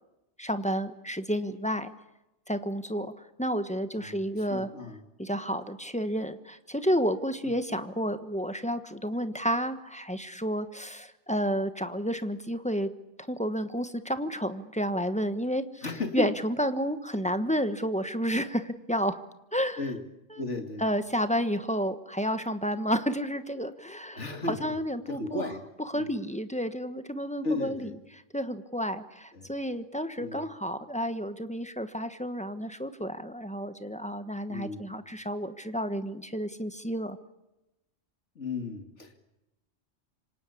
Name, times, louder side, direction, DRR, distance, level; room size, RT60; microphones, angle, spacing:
voice 1, 0.4-1.9 2.5-4.7 5.2-12.9 13.3-15.9 16.1-19.2 19.5-19.8 20.3-20.4 20.8-25.4 25.9-27.9 28.3-37.2, equal, 5° left, 9 dB, 1.2 m, -31 dB
voice 2, 3.9-5.0 15.8-16.3 19.8-20.0 20.4-20.8 24.1-24.7 25.1-25.7 25.9-26.1 27.4-27.9 29.3-29.5 30.2-30.5 34.5-34.8 38.3-39.2, left 3 dB, 65° left, 5 dB, 2.9 m, -34 dB
27.0 x 25.0 x 8.5 m, 0.97 s
omnidirectional pair, 1.3 m